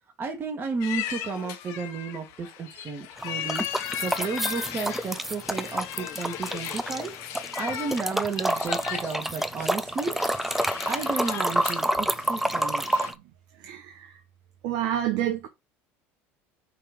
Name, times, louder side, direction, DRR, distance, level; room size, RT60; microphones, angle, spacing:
voice 1, 0.2-7.1 7.6-10.2 10.8-12.8, right 4 dB, 35° right, 1.7 m, -33 dB
sound 1, 0.8-13.1, left 11 dB, 65° left, 1.1 m, -37 dB
sound 2, 3.2-7.1 7.3-13.1, right 1 dB, 5° right, 0.5 m, -28 dB
voice 2, 13.6-14.1 14.6-15.5, right 11 dB, 70° right, 1.0 m, -28 dB
5.7 x 3.3 x 5.2 m
supercardioid pair, 105°, 6 cm